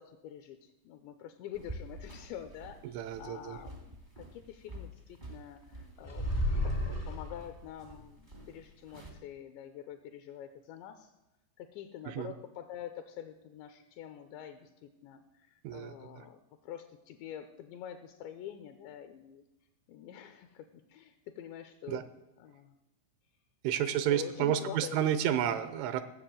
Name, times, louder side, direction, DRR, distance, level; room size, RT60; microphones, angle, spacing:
voice 1, 0.0-6.3 6.6-11.1 11.6-19.4 19.9-22.1 22.4-22.7 23.8-25.0, left 10 dB, 80° left, 7 dB, 2.7 m, -46 dB
sound 1, 1.5-9.1, right 1 dB, 60° right, 0.5 m, -49 dB
voice 2, 2.8-3.6 12.1-12.3 15.6-15.9 21.9-22.0 23.6-26.0, right 10 dB, 85° right, 12 dB, 3.1 m, -31 dB
sound 2, 6.0-7.7, left 1 dB, 40° left, 0.4 m, -32 dB
16.0 x 7.3 x 7.7 m, 0.96 s
omnidirectional pair, 5.7 m